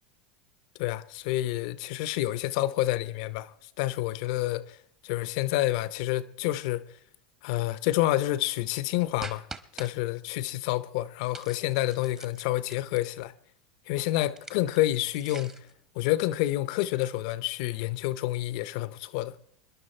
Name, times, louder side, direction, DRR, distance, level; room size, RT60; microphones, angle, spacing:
voice 1, 0.8-4.8 5.0-6.8 7.4-9.5 9.7-13.3 13.9-15.6 16.0-19.3, left 16 dB, 65° left, 0.7 m, -28 dB
sound 1, 9.2-9.9 11.3-13.2 14.3-15.7, right 2 dB, 15° right, 1.1 m, -44 dB
25.0 x 10.5 x 4.3 m
hypercardioid pair, 105°, 4 cm